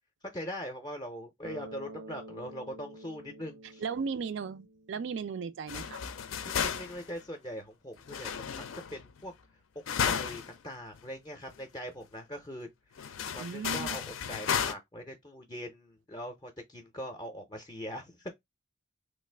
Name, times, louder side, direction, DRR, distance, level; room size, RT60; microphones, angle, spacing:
voice 1, 0.3-3.8 6.4-8.7 8.9-9.3 9.8-12.7 12.9-18.3, equal, 20° left, 0.5 m, -42 dB
Bass guitar, 1.4-5.4, right 2 dB, 85° right, 0.7 m, -49 dB
voice 2, 3.8-6.0 13.4-13.9, right 5 dB, 60° right, 0.4 m, -36 dB
sound 1, 5.7-7.2 8.1-9.1 9.9-10.6 10.9-11.0 11.5-11.6 13.0-14.7, left 7 dB, 80° left, 0.4 m, -33 dB
3.2 x 2.4 x 3.2 m
head